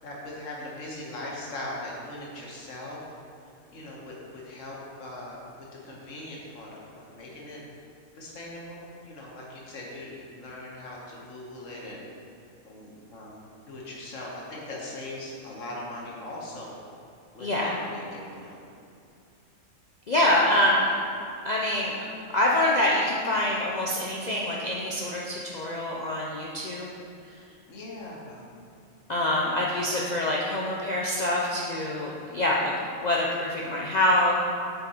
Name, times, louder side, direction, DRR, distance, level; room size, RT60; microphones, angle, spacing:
voice 1, 0.0-3.0 3.7-7.6 8.1-12.0 12.6-13.4 13.7-16.7 17.3-18.6 20.3-20.4 27.7-28.5 32.4-32.8, left 1 dB, 60° left, -3 dB, 1.5 m, -40 dB
voice 2, 17.4-17.8 20.1-20.9 21.4-22.0 22.3-26.9 29.1-32.7 33.0-34.3, left 1 dB, 75° left, -4 dB, 0.4 m, -25 dB
7.6 x 4.0 x 4.2 m, 2.5 s
omnidirectional pair, 1.5 m